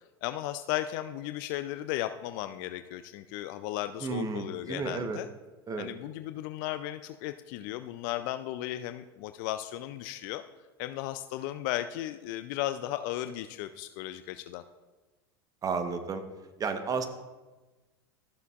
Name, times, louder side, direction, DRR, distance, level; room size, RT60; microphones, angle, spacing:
voice 1, 0.2-5.3 5.8-10.4 10.8-14.6, left 14 dB, 55° left, 11 dB, 0.4 m, -35 dB
voice 2, 4.0-5.2 5.7-5.9 15.6-16.2 16.6-17.0, right 5 dB, 25° right, 8 dB, 1.1 m, -32 dB
13.5 x 6.7 x 2.4 m, 1.2 s
hypercardioid pair, 85°, 13 cm